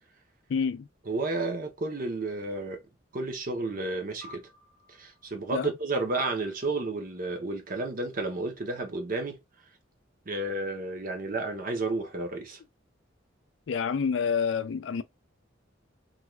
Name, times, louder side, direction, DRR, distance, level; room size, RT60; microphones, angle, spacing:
voice 1, 0.5-0.9 5.5-5.7 13.7-15.0, left 6 dB, 70° left, 0.3 m, -28 dB
voice 2, 1.1-2.8 3.1-4.4 4.9-9.4 10.3-12.6, right 2 dB, 45° right, 0.7 m, -31 dB
sound 1, 4.2-6.9, left 1 dB, 75° right, 1.2 m, -54 dB
2.5 x 2.3 x 3.1 m
head